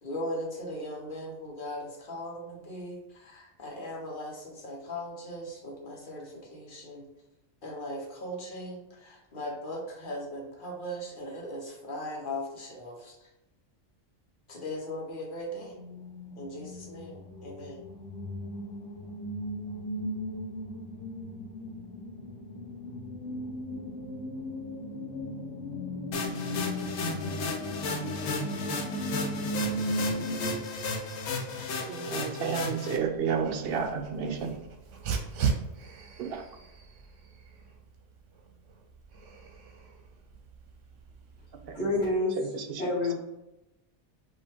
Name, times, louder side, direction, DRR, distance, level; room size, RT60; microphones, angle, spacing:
voice 1, 0.0-7.1 7.6-13.1 14.5-15.8 16.4-17.8, left 1 dB, 45° left, 0 dB, 1.1 m, -38 dB
sound 1, 15.4-30.6, equal, 90° left, 1.2 m, -36 dB
sound 2, 26.1-33.0, left 3 dB, 70° left, 0.9 m, -34 dB
voice 2, 31.9-34.5 36.2-36.4, right 6 dB, 60° right, 4 dB, 0.8 m, -30 dB
Dog, 33.0-42.1, right 6 dB, 80° right, 1.0 m, -38 dB
voice 3, 41.7-43.1, left 2 dB, 10° left, -11 dB, 1.5 m, -28 dB
5.4 x 2.8 x 3.5 m, 0.92 s
omnidirectional pair, 1.3 m